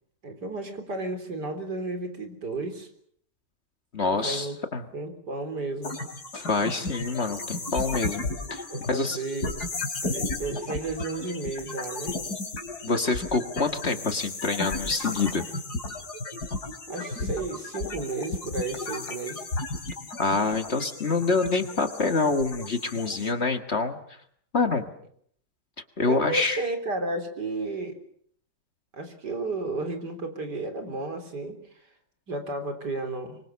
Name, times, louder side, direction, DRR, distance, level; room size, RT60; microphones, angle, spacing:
voice 1, 0.2-2.9 4.1-4.6 4.9-6.0 8.7-9.6 10.0-12.2 16.9-19.5 26.1-28.0 28.9-31.8 32.3-33.4, right 2 dB, 75° right, 7 dB, 4.3 m, -33 dB
voice 2, 3.9-4.8 6.3-9.2 12.8-15.4 20.2-24.0 24.5-24.9 26.0-26.6, left 3 dB, 40° left, 7 dB, 1.9 m, -26 dB
sound 1, 5.8-23.3, left 3 dB, 65° left, 4.1 m, -34 dB
26.0 x 24.5 x 7.0 m, 0.64 s
omnidirectional pair, 1.8 m